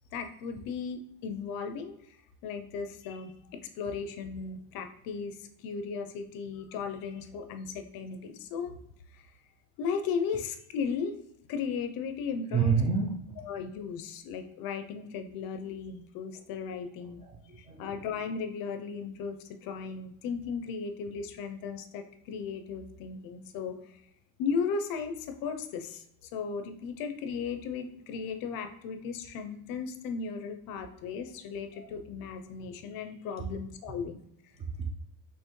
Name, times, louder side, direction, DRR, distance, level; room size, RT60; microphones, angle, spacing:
voice 1, 0.1-3.3 3.8-8.7 9.2-9.3 9.8-11.2 11.5-12.8 13.4-17.2 17.6-24.0 24.4-34.2, left 5 dB, 50° left, 7 dB, 0.6 m, -36 dB
voice 2, 12.5-13.4 17.2-18.0 34.6-34.9, right 5 dB, 15° right, -1 dB, 0.3 m, -29 dB
5.5 x 3.1 x 3.1 m, 0.75 s
cardioid pair, 155°, 44 cm